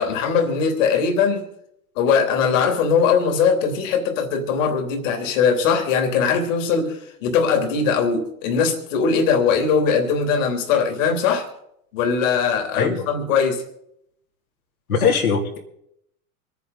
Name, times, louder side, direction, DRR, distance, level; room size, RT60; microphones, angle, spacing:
voice 1, 0.0-1.4 1.9-11.5 11.9-13.6, left 6 dB, 60° left, 3.2 m, -20 dB
voice 2, 14.9-15.6, left 6 dB, 80° left, 2.9 m, -20 dB
26.5 x 10.5 x 4.0 m
hypercardioid pair, 85°, 42 cm